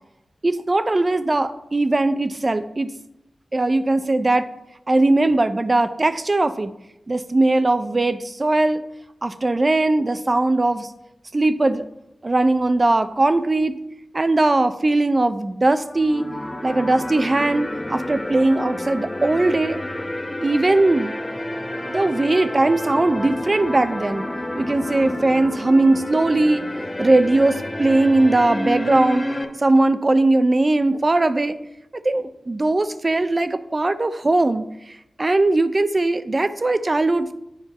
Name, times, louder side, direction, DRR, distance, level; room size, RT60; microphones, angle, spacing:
voice 1, 0.4-2.9 3.5-4.5 4.9-6.7 7.1-8.8 9.2-10.9 11.3-11.9 12.2-13.8 14.1-16.3 16.6-19.8 20.4-21.2 21.8-24.2 24.6-26.6 27.0-29.2 29.6-31.6 32.0-34.6 35.2-37.3, right 2 dB, 35° right, 11 dB, 0.6 m, -19 dB
sound 1, 15.7-29.4, left 1 dB, 20° left, 1.0 m, -29 dB
8.9 x 4.5 x 5.4 m, 0.85 s
wide cardioid pair, 75°, 0 cm